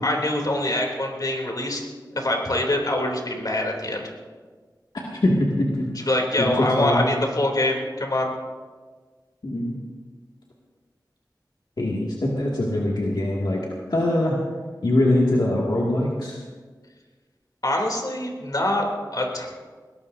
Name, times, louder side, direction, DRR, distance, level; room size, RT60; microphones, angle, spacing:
voice 1, 0.0-1.9 2.1-4.1 6.1-8.3 17.6-18.8 19.1-19.5, left 1 dB, 55° left, 1 dB, 3.2 m, -24 dB
voice 2, 4.9-6.1 6.4-6.5 6.8-7.1 9.4-9.7 11.8-13.6 13.9-14.4 14.8-16.4, left 1 dB, 75° left, -4 dB, 2.3 m, -23 dB
21.5 x 19.0 x 2.8 m, 1.5 s
wide cardioid pair, 50°, 8 cm